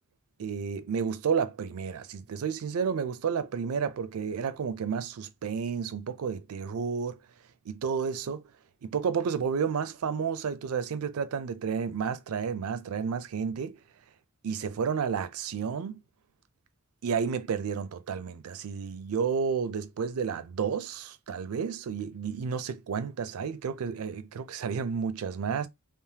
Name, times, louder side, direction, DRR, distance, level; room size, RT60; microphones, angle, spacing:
voice 1, 0.4-7.2 7.7-8.5 8.8-13.8 14.4-16.0 17.0-25.7, right 6 dB, 85° right, 0.4 m, -31 dB
3.3 x 2.0 x 2.7 m
head